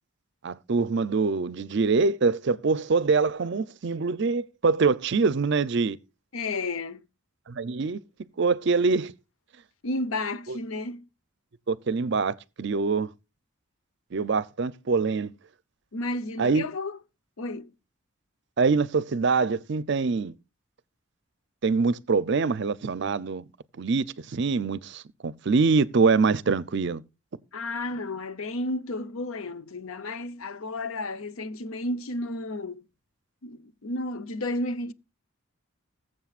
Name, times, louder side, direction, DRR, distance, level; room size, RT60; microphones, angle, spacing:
voice 1, 0.4-6.0 7.5-8.0 8.4-9.1 10.5-10.6 11.7-13.1 14.1-15.3 16.4-16.7 18.6-20.3 21.6-23.4 23.8-27.0, right 4 dB, 55° right, 0.5 m, -24 dB
voice 2, 6.3-7.0 9.8-11.1 15.9-17.0 17.4-17.7 27.5-32.8 33.4-34.9, left 2 dB, 75° left, 0.8 m, -32 dB
20.5 x 7.7 x 2.4 m
head